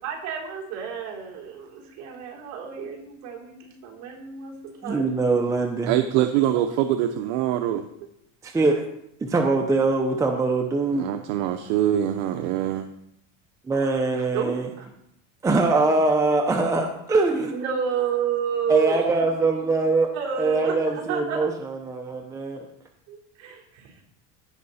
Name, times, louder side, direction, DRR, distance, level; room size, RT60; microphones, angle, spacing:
voice 1, 0.0-5.1 14.3-14.9 17.5-19.0 20.1-21.4 23.1-24.0, right 8 dB, 45° right, -2 dB, 3.7 m, -30 dB
voice 2, 4.8-5.9 8.4-8.8 9.2-11.1 13.7-14.7 15.4-17.5 18.7-20.1 20.4-22.6, right 3 dB, 10° right, 3 dB, 0.7 m, -23 dB
voice 3, 5.9-7.9 10.9-12.9, right 11 dB, 65° right, 7 dB, 0.8 m, -24 dB
16.5 x 5.7 x 4.2 m, 0.77 s
cardioid pair, 155°, 38 cm